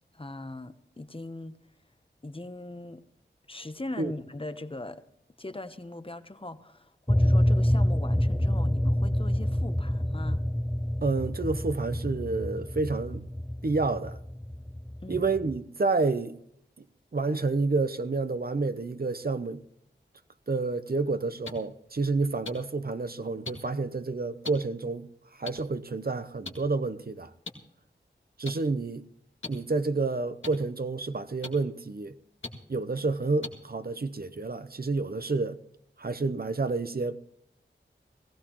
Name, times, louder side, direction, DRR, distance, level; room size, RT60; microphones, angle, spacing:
voice 1, 0.1-1.6 2.2-3.0 3.5-5.0 5.4-10.4 15.0-15.3, left 2 dB, 30° left, 1.0 m, -40 dB
sound 1, 7.1-15.6, left 1 dB, 5° left, 0.4 m, -27 dB
voice 2, 11.0-13.3 13.6-14.2 15.1-16.4 17.1-19.6 20.5-25.1 25.4-27.3 28.4-29.1 29.5-32.1 32.7-35.6 36.0-37.2, right 3 dB, 50° right, 0.8 m, -29 dB
sound 2, 21.4-21.5 22.4-22.5 23.4-23.5 24.4-24.5 25.4-25.5 26.4-26.5 27.5-27.6 28.4-28.5 29.4-29.5 30.4-30.5 31.4-31.5 32.4-32.5 33.4-33.5 34.4-34.5, left 3 dB, 90° left, 2.1 m, -36 dB
18.5 x 16.0 x 3.1 m
wide cardioid pair, 50°, 19 cm